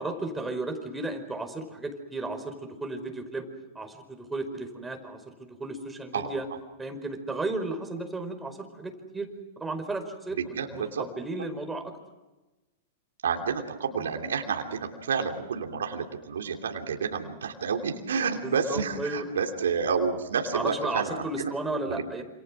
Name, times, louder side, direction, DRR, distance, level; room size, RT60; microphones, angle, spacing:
voice 1, 0.0-3.5 3.7-6.5 6.8-9.3 9.6-11.9 13.9-14.0 18.4-19.3 20.5-22.2, right 2 dB, 10° right, 6 dB, 4.8 m, -34 dB
voice 2, 10.4-11.0 13.2-21.5 21.8-22.0, right 6 dB, 75° right, 3 dB, 3.1 m, -30 dB
28.0 x 27.5 x 6.2 m, 1.1 s
hypercardioid pair, 105°, 0 cm